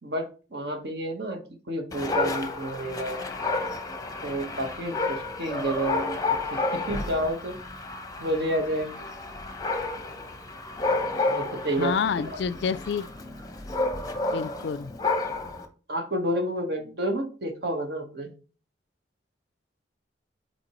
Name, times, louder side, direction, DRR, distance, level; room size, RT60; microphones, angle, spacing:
voice 1, 0.0-1.4 1.7-3.2 4.2-6.2 6.5-7.5 8.2-9.1 11.3-12.3 15.9-18.3, right 1 dB, 60° right, 1.3 m, -30 dB
Dog, 1.9-15.7, left 3 dB, 20° left, 0.7 m, -31 dB
voice 2, 11.8-13.0 14.3-14.9, left 6 dB, 65° left, 0.3 m, -28 dB
7.8 x 4.4 x 3.0 m
head